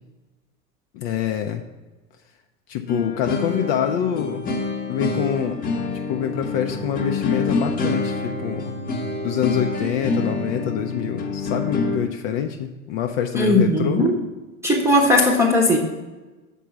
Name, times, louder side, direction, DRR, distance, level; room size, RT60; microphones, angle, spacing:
voice 1, 0.9-1.6 2.7-4.4 4.9-5.7 6.1-8.7 9.2-14.0, left 9 dB, 45° left, 5 dB, 0.6 m, -25 dB
sound 1, 2.9-12.0, left 3 dB, 20° left, 1.0 m, -26 dB
voice 2, 13.3-14.2 14.6-15.8, left 1 dB, 5° right, -1 dB, 0.9 m, -17 dB
6.8 x 4.6 x 5.7 m, 1.2 s
figure-of-eight pair, 80°, 42 cm